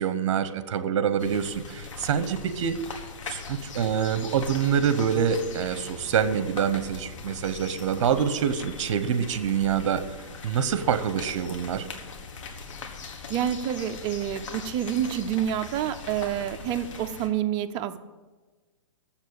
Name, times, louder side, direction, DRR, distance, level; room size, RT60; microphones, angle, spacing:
voice 1, 0.0-2.8 3.3-10.0 10.4-11.9, right 8 dB, 60° right, 12 dB, 0.9 m, -26 dB
sound 1, 1.2-17.3, left 4 dB, 70° left, 1.6 m, -41 dB
voice 2, 13.3-18.0, right 10 dB, 25° right, 7 dB, 0.5 m, -28 dB
7.3 x 7.1 x 8.2 m, 1.3 s
hypercardioid pair, 150°, 17 cm